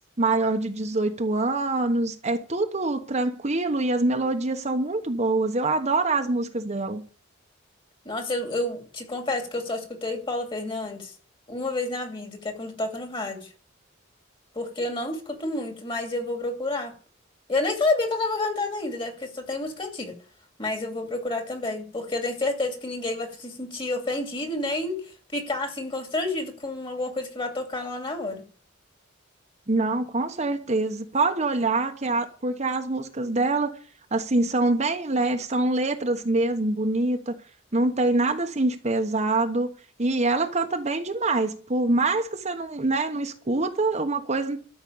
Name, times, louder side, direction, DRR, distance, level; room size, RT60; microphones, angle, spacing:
voice 1, 0.2-7.0 29.7-33.8 34.1-37.3 37.7-39.7 40.0-44.6, right 2 dB, 35° right, 1.1 m, -25 dB
voice 2, 8.0-11.1 11.5-13.5 14.5-16.9 17.5-20.1 20.6-25.0 25.3-28.4, left 2 dB, 25° left, 2.5 m, -29 dB
13.5 x 6.1 x 8.6 m
head